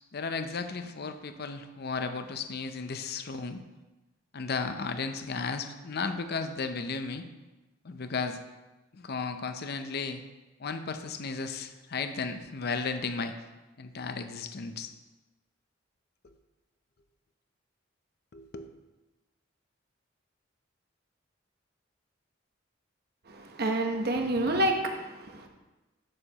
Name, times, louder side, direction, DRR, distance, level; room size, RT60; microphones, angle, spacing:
voice 1, 0.1-3.6 4.3-7.2 7.8-8.4 8.9-10.2 10.6-13.5 13.8-14.9 16.2-16.3 18.3-18.7, left 4 dB, 55° left, 8 dB, 0.6 m, -34 dB
voice 2, 23.3-25.5, right 1 dB, 55° right, 3 dB, 1.0 m, -28 dB
11.0 x 6.7 x 3.0 m, 1.1 s
head